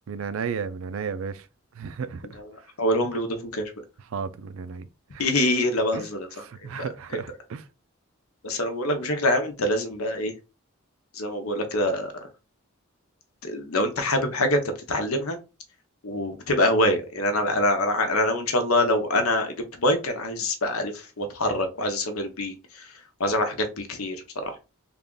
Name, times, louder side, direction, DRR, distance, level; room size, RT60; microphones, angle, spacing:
voice 1, 0.1-1.5 1.7-2.2 4.0-4.9 5.1-5.3 5.9-6.1 6.3-7.7, right 6 dB, 70° right, 0.4 m, -33 dB
voice 2, 2.8-3.7 5.2-6.3 8.4-10.3 11.2-12.1 13.4-14.6 14.9-15.4 16.0-20.9 21.2-22.5 23.2-24.5, left 1 dB, 85° left, 0.9 m, -25 dB
3.5 x 2.4 x 3.8 m
head